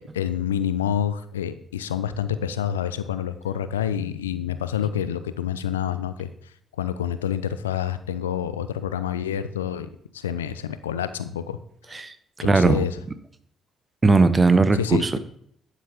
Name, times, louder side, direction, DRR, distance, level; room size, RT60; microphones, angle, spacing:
voice 1, 0.1-6.3 6.8-9.9 10.1-11.6 11.9-12.0 12.4-12.9 14.8-15.2, left 9 dB, 85° left, 13 dB, 0.5 m, -27 dB
voice 2, 11.9-12.8 14.0-15.2, right 3 dB, 30° right, 12 dB, 1.1 m, -19 dB
12.0 x 8.3 x 3.5 m, 0.66 s
figure-of-eight pair, 45°, 0 cm